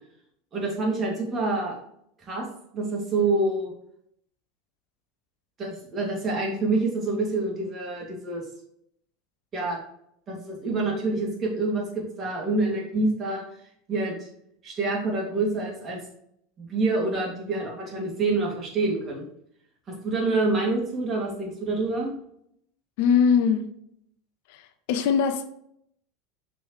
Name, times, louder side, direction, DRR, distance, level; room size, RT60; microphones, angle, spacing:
voice 1, 0.5-1.7 2.3-2.4 2.7-3.7 5.6-8.4 9.5-9.8 10.3-13.4 13.9-14.3 14.6-16.0 16.6-19.2 19.9-22.1, right 2 dB, 35° right, 2.3 m, -27 dB
voice 2, 23.0-23.7 24.5-25.5, left 6 dB, 60° left, 0.5 m, -22 dB
6.1 x 5.1 x 3.1 m
figure-of-eight pair, 80°, 0 cm